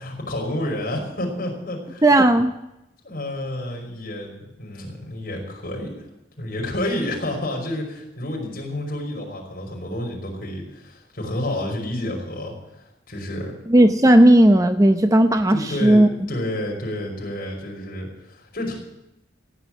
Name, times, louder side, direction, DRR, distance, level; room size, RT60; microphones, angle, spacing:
voice 1, 0.0-2.0 3.0-5.9 6.4-12.5 13.1-13.5 15.5-18.7, left 1 dB, 50° left, -1 dB, 5.6 m, -29 dB
voice 2, 2.0-2.5 13.7-16.1, right 1 dB, 20° right, 7 dB, 0.6 m, -14 dB
16.0 x 9.3 x 9.1 m, 0.90 s
head